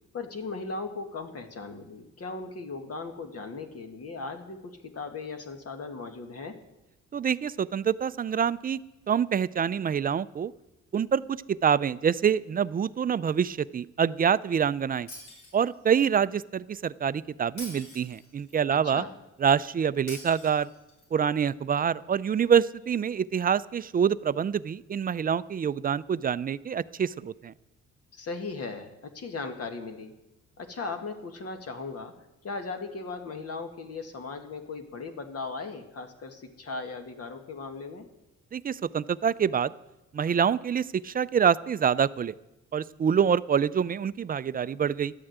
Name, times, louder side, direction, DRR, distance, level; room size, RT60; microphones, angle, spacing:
voice 1, 0.1-6.6 18.7-19.2 28.1-30.1 30.6-32.1 32.4-38.1, left 4 dB, 55° left, 5 dB, 1.8 m, -37 dB
voice 2, 7.1-8.8 9.1-10.5 10.9-15.1 15.5-19.0 19.4-20.7 21.1-27.5 38.5-39.7 40.1-42.3 42.7-45.1, right 7 dB, 30° right, 17 dB, 0.4 m, -26 dB
Shatter, 15.1-16.0 17.6-18.6 20.1-21.1, left 1 dB, 90° left, 5.7 m, -45 dB
12.5 x 8.7 x 8.0 m, 0.95 s
cardioid pair, 90°, 30 cm